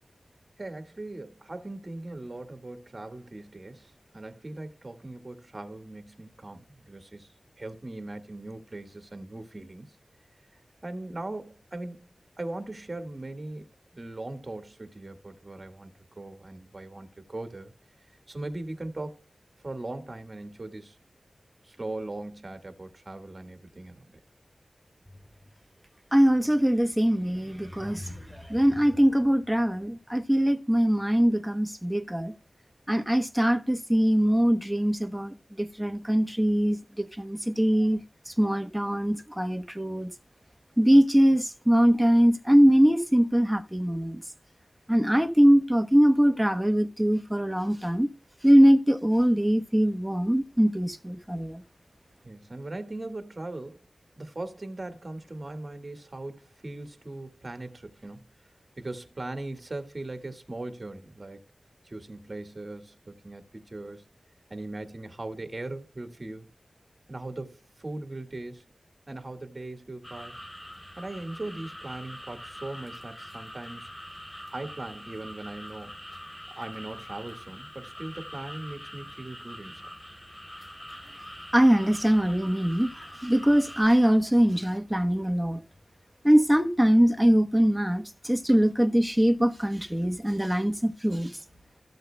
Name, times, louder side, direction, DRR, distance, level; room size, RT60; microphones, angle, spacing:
voice 1, 0.6-7.3 7.6-9.9 10.8-12.1 12.4-17.7 18.3-19.2 19.6-21.0 21.6-24.1 52.2-53.9 54.2-58.3 58.8-61.4 61.8-64.0 64.5-66.5 67.1-68.6 69.1-70.4 71.0-73.9 74.5-76.0 76.5-79.9, right 2 dB, 40° right, 1.8 m, -39 dB
voice 2, 26.1-28.2 28.5-32.3 32.9-38.0 38.4-40.1 40.8-44.2 44.9-48.1 48.4-51.6 81.5-82.9 83.2-85.6 86.2-91.3, equal, 5° right, 1.1 m, -22 dB
sound 1, 70.0-83.8, equal, 15° left, 3.1 m, -44 dB
14.5 x 7.9 x 2.2 m
cardioid pair, 45°, 0 cm